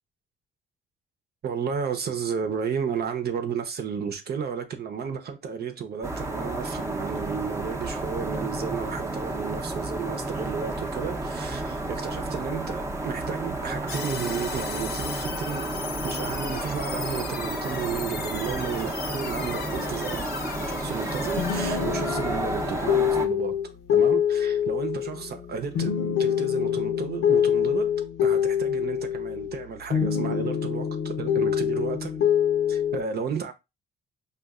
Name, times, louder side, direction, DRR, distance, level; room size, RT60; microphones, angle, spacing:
voice 1, 1.4-15.7 16.0-20.3 20.6-23.5 23.9-27.9 28.2-32.2 32.7-33.5, right 7 dB, 55° right, 0.8 m, -33 dB
sound 1, 6.0-23.3, right 2 dB, 15° right, 0.8 m, -32 dB
sound 2, 13.9-23.1, left 6 dB, 55° left, 0.6 m, -37 dB
sound 3, 21.3-29.6 29.9-33.0, left 8 dB, 85° left, 0.9 m, -25 dB
5.3 x 2.5 x 2.4 m
cardioid pair, 90°, 20 cm